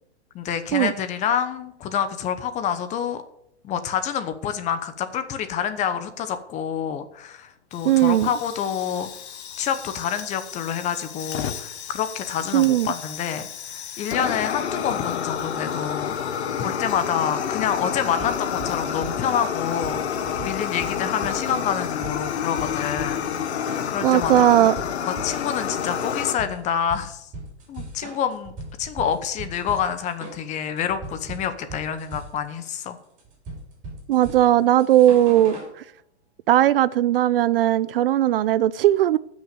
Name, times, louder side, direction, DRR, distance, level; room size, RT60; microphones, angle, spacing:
voice 1, 0.3-3.2 3.6-9.1 9.6-13.5 14.0-16.1 16.6-20.0 20.4-23.3 23.9-24.7 25.2-27.3 27.7-28.5 28.8-33.0, left 8 dB, 20° left, 10 dB, 1.0 m, -27 dB
Fire, 7.7-26.3, left 8 dB, 70° left, 1.4 m, -30 dB
voice 2, 7.8-8.3 12.5-12.9 24.0-24.8 34.1-35.6 36.5-39.2, right 13 dB, 55° right, 19 dB, 0.5 m, -18 dB
sound 1, 18.2-35.7, right 2 dB, 20° right, 6.2 m, -39 dB
14.5 x 6.4 x 6.8 m, 0.74 s
hypercardioid pair, 140°, 34 cm